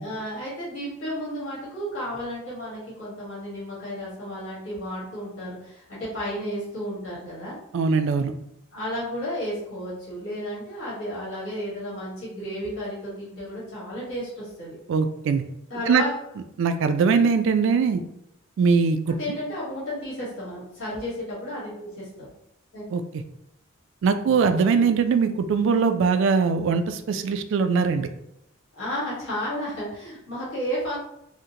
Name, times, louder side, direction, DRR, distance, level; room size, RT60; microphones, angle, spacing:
voice 1, 0.0-7.6 8.7-14.8 15.7-16.2 19.2-22.3 22.7-22.8 28.7-31.0, equal, 80° left, -8 dB, 1.5 m, -32 dB
voice 2, 7.7-8.3 14.9-15.4 15.9-16.0 16.6-18.0 18.6-19.2 22.9-23.2 24.0-28.1, right 5 dB, 65° right, 9 dB, 0.3 m, -21 dB
3.7 x 2.1 x 2.8 m, 0.81 s
head